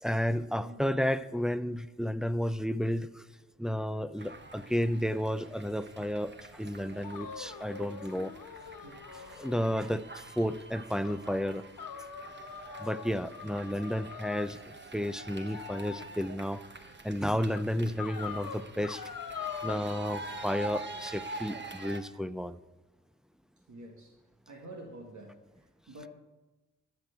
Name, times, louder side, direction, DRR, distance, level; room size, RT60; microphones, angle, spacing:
voice 1, 0.0-3.2 3.6-8.3 9.4-11.6 12.8-14.6 14.9-16.6 17.0-19.0 19.6-22.6, equal, ahead, 13 dB, 0.6 m, -32 dB
sound 1, 4.2-22.0, right 2 dB, 35° right, 1.3 m, -46 dB
sound 2, 7.0-10.0 10.4-10.5 11.0-11.2 11.8-14.5 15.5-16.1 16.8-16.9 17.5-17.6 18.0-19.8, left 8 dB, 75° left, 1.0 m, -43 dB
voice 2, 23.7-24.2 24.5-26.1, right 1 dB, 60° right, 1 dB, 1.6 m, -48 dB
12.5 x 5.9 x 7.8 m, 1.1 s
supercardioid pair, 45°, 33 cm